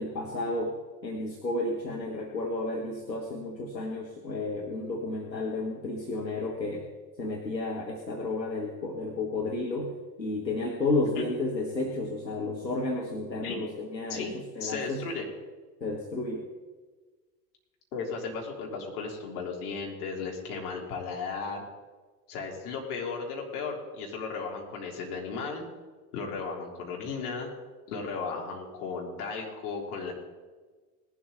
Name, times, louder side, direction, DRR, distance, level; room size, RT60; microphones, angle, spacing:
voice 1, 0.0-6.9 7.2-9.9 10.2-14.3 14.5-15.0 15.8-16.5, left 2 dB, 90° left, 0 dB, 1.5 m, -32 dB
voice 2, 14.6-15.3 17.9-21.7 22.3-25.6 26.1-27.5 27.9-30.1, left 4 dB, 65° left, -1 dB, 3.9 m, -35 dB
19.5 x 12.0 x 4.1 m, 1.4 s
figure-of-eight pair, 75°, 49 cm